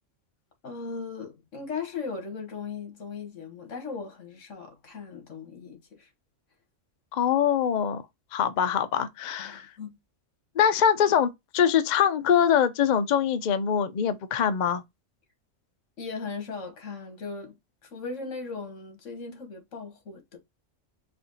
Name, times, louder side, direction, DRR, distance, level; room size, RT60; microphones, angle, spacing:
voice 1, 0.6-6.1 9.4-10.0 16.0-17.5 17.8-20.4, left 4 dB, 70° left, 1.7 m, -38 dB
voice 2, 7.1-8.0 8.3-9.7 10.6-14.8, left 8 dB, 55° left, 0.5 m, -23 dB
4.3 x 2.6 x 3.9 m
omnidirectional pair, 1.3 m